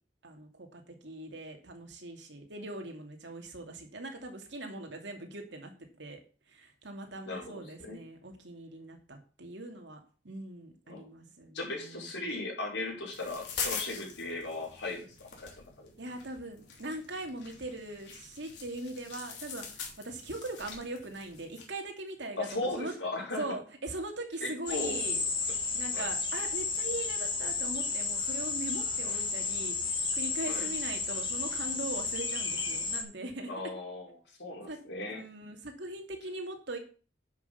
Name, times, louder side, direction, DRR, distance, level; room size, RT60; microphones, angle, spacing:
voice 1, 0.2-5.7 6.0-6.2 6.5-10.0 10.2-12.1 16.0-22.5 22.8-22.9 23.4-25.2 25.7-33.5 34.7-34.8 35.1-36.8, right 2 dB, 80° right, 3 dB, 2.6 m, -41 dB
voice 2, 7.3-8.0 10.9-11.1 11.5-15.7 22.4-23.4 24.4-25.0 25.9-26.1 29.0-29.2 30.5-30.7 33.5-35.2, left 2 dB, 90° left, -3 dB, 5.5 m, -37 dB
sound 1, 13.1-21.7, left 6 dB, 75° left, 3.2 m, -43 dB
sound 2, 24.7-33.0, left 4 dB, 25° left, 2.2 m, -32 dB
10.5 x 6.6 x 5.7 m, 0.38 s
head